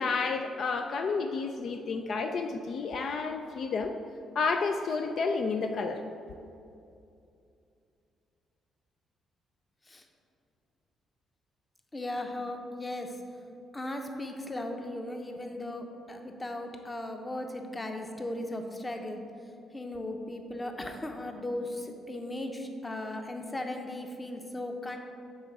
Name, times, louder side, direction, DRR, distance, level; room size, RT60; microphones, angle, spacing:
voice 1, 0.0-3.9 4.4-6.0, left 4 dB, 60° left, 5 dB, 0.4 m, -30 dB
voice 2, 11.9-13.2 13.7-19.2 19.7-25.0, left 1 dB, 20° left, 4 dB, 0.8 m, -37 dB
7.4 x 3.7 x 5.9 m, 2.6 s
cardioid pair, 90°, 0 cm